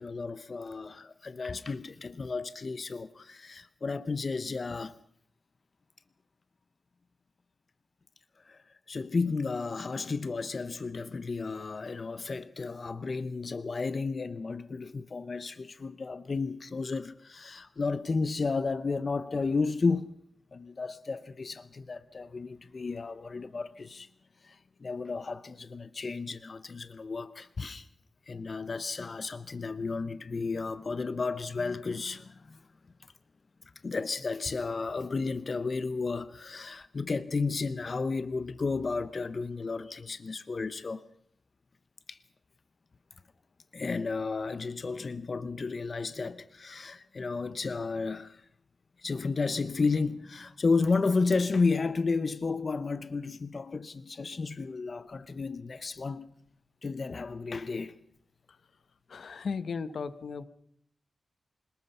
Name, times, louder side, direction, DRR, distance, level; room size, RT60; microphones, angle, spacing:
voice 1, 0.0-4.9 8.4-20.1 20.5-24.1 24.4-27.9 28.3-32.6 33.8-41.0 42.1-42.2 43.7-48.4 49.0-56.3 56.8-58.0, left 4 dB, 45° left, 0.8 m, -32 dB
voice 2, 59.1-60.4, left 5 dB, 70° left, 1.1 m, -36 dB
27.0 x 19.5 x 5.6 m
wide cardioid pair, 115°, 0 cm